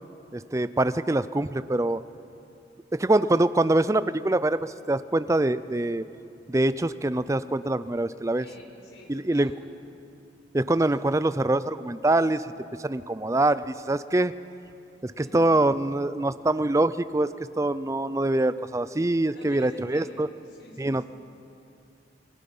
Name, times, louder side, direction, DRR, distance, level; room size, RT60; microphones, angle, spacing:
voice 1, 0.3-2.0 3.0-6.1 6.5-8.5 9.1-9.5 10.5-12.5 12.8-14.3 15.0-20.3 20.8-21.1, right 2 dB, 15° right, 14 dB, 0.4 m, -24 dB
voice 2, 8.4-9.5 15.2-15.4 19.3-21.1, left 1 dB, 80° left, 0 dB, 5.0 m, -49 dB
29.0 x 21.0 x 5.5 m, 2.6 s
head